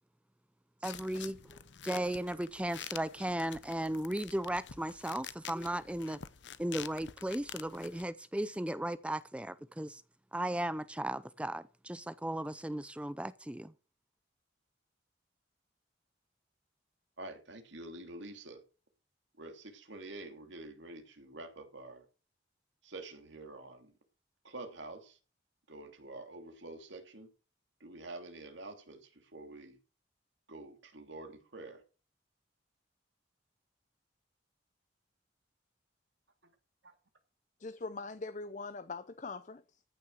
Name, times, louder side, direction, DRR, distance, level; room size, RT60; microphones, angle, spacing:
sound 1, 0.8-8.0, left 9 dB, 70° left, 0.8 m, -48 dB
voice 1, 0.8-6.2 6.6-10.0 10.3-13.7, right 1 dB, 5° right, 0.5 m, -36 dB
voice 2, 17.2-18.6 19.4-22.0 22.8-23.9 24.4-25.2 25.7-27.3 27.8-29.8 30.5-31.8, right 2 dB, 75° right, 2.9 m, -47 dB
voice 3, 37.6-39.8, left 3 dB, 40° left, 0.6 m, -42 dB
14.5 x 6.8 x 6.4 m
head